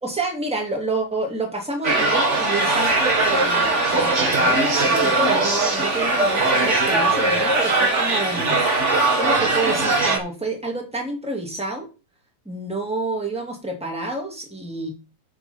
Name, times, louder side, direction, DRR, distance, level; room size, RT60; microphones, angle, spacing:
voice 1, 0.0-8.6 9.1-11.9 12.4-14.9, right 2 dB, ahead, 1 dB, 1.6 m, -29 dB
sound 1, 1.8-10.2, right 2 dB, 35° right, 1.1 m, -20 dB
7.3 x 6.0 x 7.0 m, 0.32 s
omnidirectional pair, 4.1 m